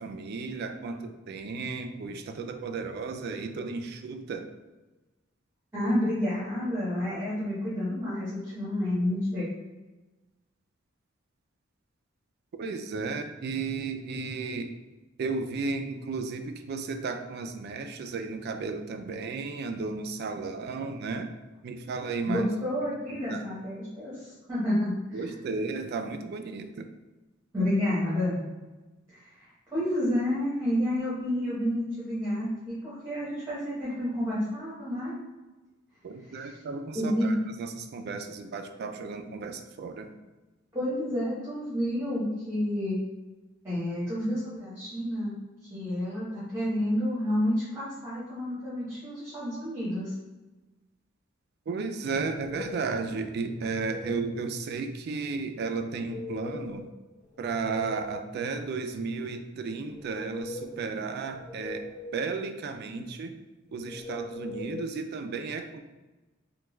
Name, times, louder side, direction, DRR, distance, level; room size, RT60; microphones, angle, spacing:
voice 1, 0.0-4.5 12.6-14.7 15.2-21.3 21.6-22.4 23.3-23.5 25.1-26.9 36.0-40.1 51.7-56.9 57.4-61.9 62.1-63.4 63.7-65.8, right 4 dB, 55° right, 6 dB, 0.3 m, -34 dB
voice 2, 5.7-9.5 22.3-25.3 27.5-28.4 29.1-35.2 36.3-36.6 36.9-37.3 40.7-43.0 43.6-45.3 45.7-50.1, left 1 dB, 15° right, -10 dB, 1.0 m, -30 dB
sound 1, 52.1-52.9 53.4-54.3 55.9-56.9 57.2-58.3 59.8-60.8 61.2-62.2 63.8-64.9, left 2 dB, 45° left, 0.9 m, -41 dB
3.4 x 2.2 x 3.0 m, 1.2 s
head